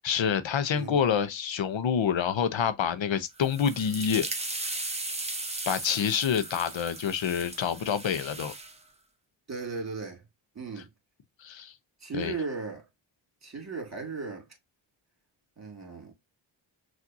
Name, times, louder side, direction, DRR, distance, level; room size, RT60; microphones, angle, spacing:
voice 1, 0.0-4.3 5.7-8.5 11.4-11.7 12.1-12.3, left 7 dB, 70° left, 0.7 m, -27 dB
sound 1, 3.4-8.8, right 2 dB, 15° right, 0.8 m, -37 dB
voice 2, 9.5-10.2 10.6-10.9 12.0-12.9 13.4-14.5 15.6-16.1, right 4 dB, 35° right, 2.1 m, -36 dB
5.9 x 2.6 x 2.6 m
wide cardioid pair, 80°, 48 cm